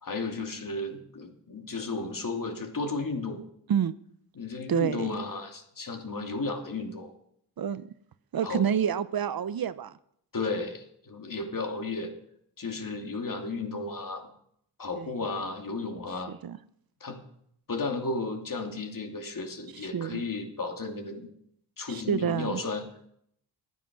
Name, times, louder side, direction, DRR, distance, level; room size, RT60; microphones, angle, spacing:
voice 1, 0.0-3.4 4.3-7.1 8.4-8.6 10.3-12.1 12.6-14.3 14.8-16.3 17.0-17.2 17.7-21.3 21.8-23.1, left 3 dB, 50° left, 3 dB, 2.8 m, -34 dB
voice 2, 4.7-5.1 7.6-7.9 8.3-9.9 15.0-15.1 16.3-16.6 19.9-20.2 21.9-22.6, right 8 dB, 55° right, 15 dB, 0.8 m, -28 dB
13.5 x 9.5 x 6.1 m, 0.71 s
cardioid pair, 60°, 42 cm